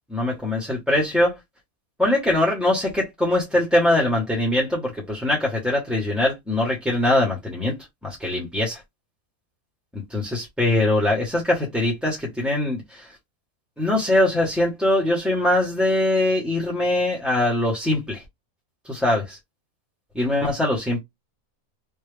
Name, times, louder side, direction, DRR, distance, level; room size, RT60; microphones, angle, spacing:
voice 1, 0.1-1.4 2.0-7.7 8.0-8.8 9.9-13.1 13.8-18.2 18.8-19.4 20.1-21.0, left 1 dB, ahead, 0.9 m, -22 dB
3.3 x 2.6 x 3.3 m
omnidirectional pair, 1.5 m